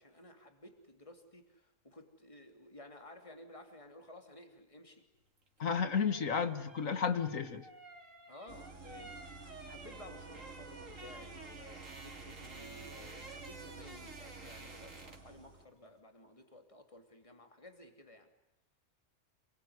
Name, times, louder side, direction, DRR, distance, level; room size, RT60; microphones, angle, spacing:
voice 1, 0.0-5.0 8.3-18.3, left 1 dB, 25° left, 4 dB, 3.1 m, -55 dB
sound 1, 5.4-15.4 15.6-15.9, right 3 dB, 75° right, 3.2 m, -52 dB
voice 2, 5.6-7.7, left 6 dB, 85° left, 9 dB, 2.1 m, -32 dB
sound 2, 8.5-15.7, right 3 dB, 60° right, 2.6 m, -52 dB
27.5 x 22.0 x 9.7 m, 0.88 s
omnidirectional pair, 1.4 m